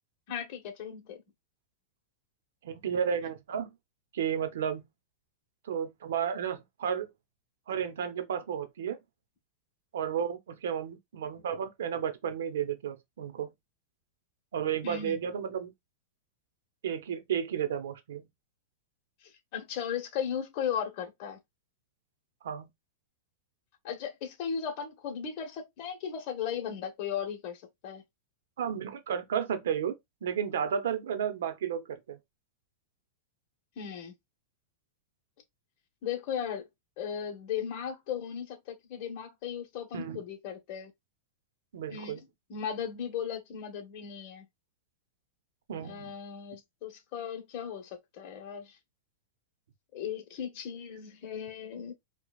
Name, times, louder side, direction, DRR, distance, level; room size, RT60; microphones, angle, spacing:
voice 1, 0.3-1.2 14.8-15.2 19.2-21.4 23.8-28.0 33.8-34.1 36.0-36.7 37.0-40.9 41.9-42.2 42.5-44.5 45.8-48.8 49.9-51.9, left 8 dB, 45° left, 1.1 m, -36 dB
voice 2, 2.6-3.7 4.1-4.9 5.7-7.1 7.7-9.0 9.9-13.5 14.5-15.7 16.8-18.3 22.4-22.7 28.6-29.9 30.2-32.2 39.9-40.2 41.7-42.2 45.7-46.1, right 8 dB, 85° right, 0.8 m, -32 dB
4.7 x 2.3 x 2.4 m
supercardioid pair, 145°, 0 cm